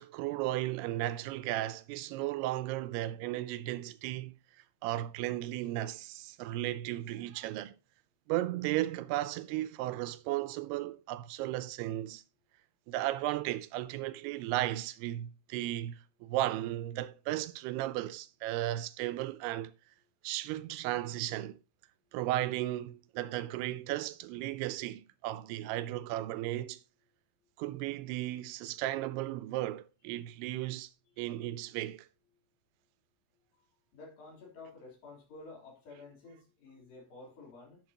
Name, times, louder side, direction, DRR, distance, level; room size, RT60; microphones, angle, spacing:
voice 1, 0.0-4.4 4.8-7.8 8.3-12.2 12.9-19.7 20.2-21.6 22.1-26.8 27.6-30.9 31.2-32.1, right 15 dB, 85° right, 2.6 m, -35 dB
voice 2, 33.9-37.8, left 3 dB, 65° left, 5.3 m, -51 dB
10.5 x 7.3 x 2.9 m
omnidirectional pair, 4.6 m